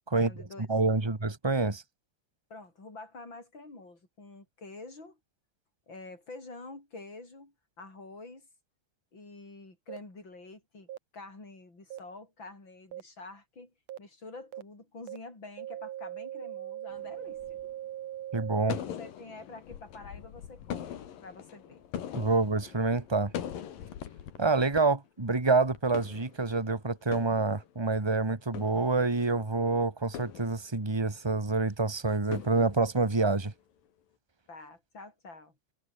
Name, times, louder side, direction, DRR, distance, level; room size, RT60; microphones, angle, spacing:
voice 1, 0.1-0.7 2.5-5.2 5.9-8.5 9.1-13.7 14.0-17.6 18.7-21.8 34.5-35.6, left 3 dB, 35° left, 8.2 m, -47 dB
voice 2, 0.7-1.8 18.3-18.8 22.1-23.3 24.4-33.5, right 3 dB, 20° right, 0.7 m, -27 dB
sound 1, 9.9-10.0 10.9-11.0 11.9-12.0 12.9-13.0 13.9-14.0 14.5-14.6 15.1-15.2 15.6-18.7, right 12 dB, 65° right, 1.9 m, -40 dB
sound 2, 16.9-17.7 18.7-24.8 25.1-25.2 25.6-26.7 27.0-28.0 28.4-29.4 30.1-31.0 32.3-33.3, left 9 dB, 90° left, 3.9 m, -42 dB
omnidirectional pair, 3.8 m